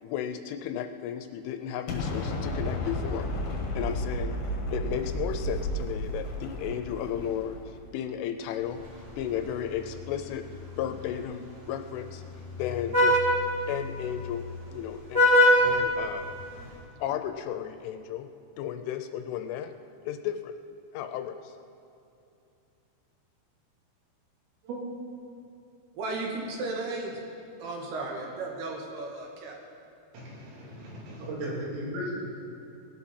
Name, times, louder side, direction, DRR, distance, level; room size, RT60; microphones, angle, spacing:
voice 1, 0.0-3.3 3.7-8.8 9.2-10.4 10.8-12.2 12.6-13.2 13.7-14.5 14.7-15.2 15.6-16.3 17.0-19.7 20.1-20.6 20.9-21.5, left 9 dB, 80° left, 8 dB, 3.0 m, -34 dB
Explosion, 1.9-7.9, equal, 55° left, 2.5 m, -32 dB
Vehicle horn car horn honking, 8.6-16.7, left 1 dB, 25° right, 3.3 m, -27 dB
voice 2, 26.0-27.3 27.6-29.6, right 2 dB, 65° right, 0 dB, 3.1 m, -34 dB
voice 3, 30.1-32.3, right 1 dB, 80° right, -5 dB, 5.8 m, -36 dB
19.5 x 12.0 x 4.3 m, 2.7 s
omnidirectional pair, 5.8 m